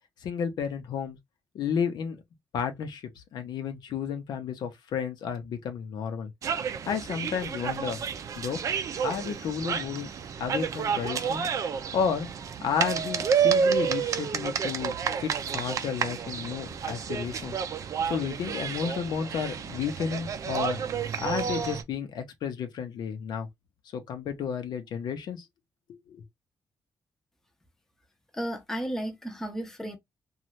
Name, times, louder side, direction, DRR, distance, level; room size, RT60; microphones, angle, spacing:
voice 1, 0.2-1.2 1.5-2.2 2.5-6.3 6.9-8.0 8.3-8.6 9.0-10.1 10.4-11.5 11.9-12.3 12.6-14.9 15.2-17.6 18.0-20.8 21.2-23.5 23.9-25.4 25.9-26.2, left 7 dB, 80° left, 0.7 m, -32 dB
sound 1, 6.4-21.8, right 7 dB, 50° right, 0.4 m, -30 dB
voice 2, 28.4-30.0, right 1 dB, 5° left, 0.7 m, -33 dB
2.7 x 2.4 x 3.1 m
wide cardioid pair, 155°, 7 cm